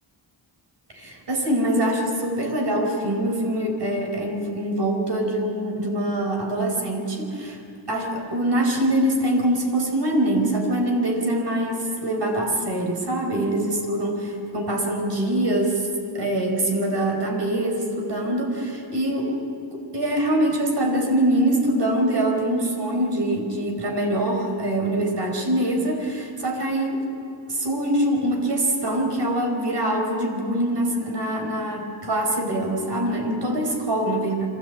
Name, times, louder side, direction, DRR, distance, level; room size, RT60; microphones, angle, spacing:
voice 1, 0.9-7.6 7.9-15.9 16.1-19.4 19.9-27.0 27.5-34.5, right 1 dB, 60° right, 2 dB, 5.1 m, -24 dB
25.5 x 14.5 x 8.6 m, 2.4 s
cardioid pair, 80°, 46 cm